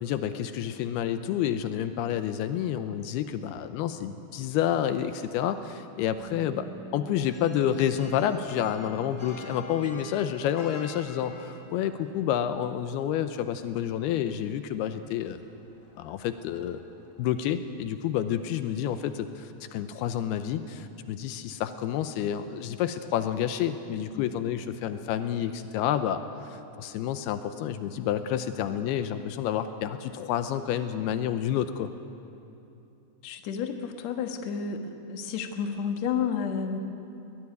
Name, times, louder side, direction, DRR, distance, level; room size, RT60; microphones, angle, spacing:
voice 1, 0.0-15.4 16.0-16.8 17.2-31.9, left 10 dB, 85° left, 10 dB, 2.7 m, -29 dB
Bass guitar, 6.2-12.4, right 6 dB, 5° right, 2.2 m, -49 dB
sound 1, 7.3-17.6, left 3 dB, 15° left, 1.4 m, -49 dB
voice 2, 33.2-34.8 35.1-36.8, left 7 dB, 60° left, 5 dB, 2.1 m, -31 dB
21.5 x 18.0 x 9.6 m, 2.8 s
omnidirectional pair, 4.6 m